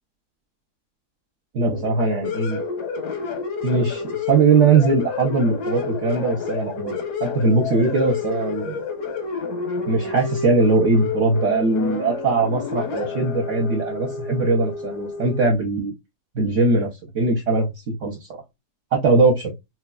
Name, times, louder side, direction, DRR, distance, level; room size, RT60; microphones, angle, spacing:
voice 1, 1.5-2.6 3.6-8.8 9.9-15.9 16.3-18.3 18.9-19.4, right 3 dB, 60° right, 0 dB, 1.0 m, -20 dB
sound 1, 1.7-15.5, left 5 dB, 90° left, 1.4 m, -30 dB
4.2 x 2.3 x 2.3 m, 0.20 s
omnidirectional pair, 1.7 m